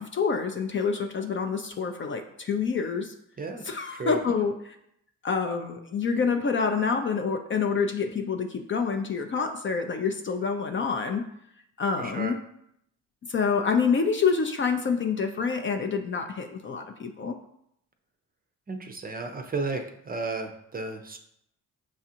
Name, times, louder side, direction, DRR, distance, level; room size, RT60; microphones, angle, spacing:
voice 1, 0.0-3.1 3.6-4.7 5.2-11.2 11.8-12.4 13.3-17.4, left 5 dB, 30° left, 5 dB, 0.5 m, -27 dB
voice 2, 12.0-12.3 18.7-21.2, right 3 dB, 25° right, 5 dB, 0.5 m, -33 dB
6.0 x 2.4 x 2.8 m, 0.75 s
supercardioid pair, 60°, 38 cm